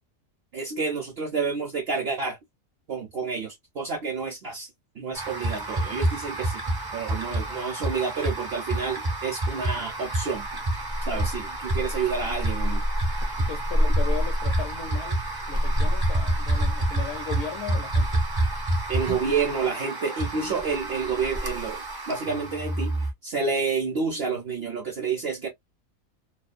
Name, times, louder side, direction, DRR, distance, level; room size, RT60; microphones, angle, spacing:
voice 1, 0.5-2.4 2.9-4.7 5.0-6.6 6.9-10.5 11.0-12.8 18.9-25.5, right 5 dB, 55° right, 0.8 m, -29 dB
sound 1, 5.1-23.1, right 1 dB, 25° right, 0.5 m, -27 dB
voice 2, 13.4-18.2, left 7 dB, 70° left, 0.9 m, -37 dB
2.4 x 2.2 x 2.4 m
omnidirectional pair, 1.4 m